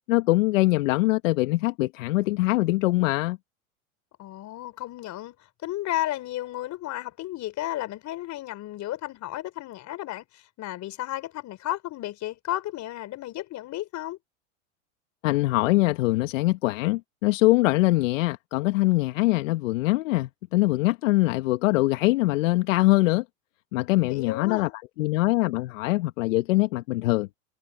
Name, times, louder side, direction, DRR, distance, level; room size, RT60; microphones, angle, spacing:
voice 1, 0.1-3.4 15.2-23.2 23.7-24.7 25.0-27.3, left 19 dB, 70° left, 1.6 m, -23 dB
voice 2, 4.2-5.4 5.6-14.2 24.1-24.7, left 15 dB, 45° left, 4.6 m, -33 dB
hypercardioid pair, 95°, 40 cm